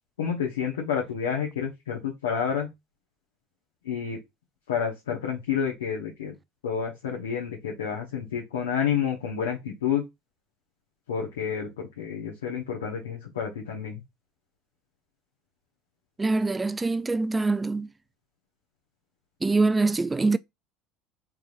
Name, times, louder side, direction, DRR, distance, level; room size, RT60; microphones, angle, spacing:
voice 1, 0.2-2.7 3.8-4.2 4.7-6.3 6.6-10.0 11.1-14.0, left 7 dB, 80° left, 1.0 m, -29 dB
voice 2, 16.2-17.9 19.4-20.4, right 3 dB, 15° right, 0.3 m, -24 dB
3.5 x 3.3 x 2.6 m
hypercardioid pair, 70°, 0 cm